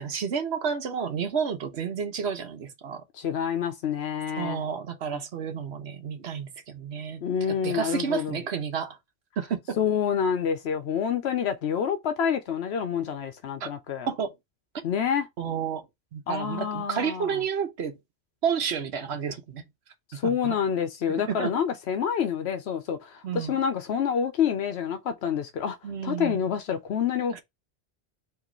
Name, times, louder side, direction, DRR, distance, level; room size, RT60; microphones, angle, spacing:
voice 1, 0.0-3.0 4.4-7.2 7.5-9.0 9.4-9.8 13.6-13.7 14.1-14.3 15.4-15.8 16.1-18.0 18.4-19.6 20.1-20.6 21.3-21.5 23.2-23.6 25.8-26.4 27.3-27.4, right 7 dB, 90° right, 1.1 m, -30 dB
voice 2, 3.1-4.6 7.2-8.4 9.8-14.1 14.8-15.3 16.3-17.4 20.1-25.8 26.0-27.4, left 8 dB, 85° left, 1.0 m, -27 dB
4.8 x 3.0 x 3.0 m
omnidirectional pair, 1.1 m